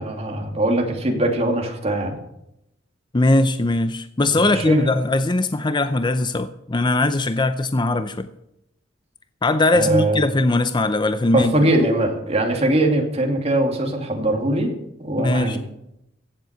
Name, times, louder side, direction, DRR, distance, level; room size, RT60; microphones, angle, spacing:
voice 1, 0.0-2.2 4.4-4.9 9.7-10.2 11.3-14.7 15.0-15.6, right 1 dB, 35° right, 2 dB, 2.7 m, -21 dB
voice 2, 3.1-8.3 9.4-11.5 15.2-15.6, left 2 dB, 25° left, 11 dB, 0.6 m, -20 dB
16.0 x 7.6 x 8.2 m, 0.82 s
head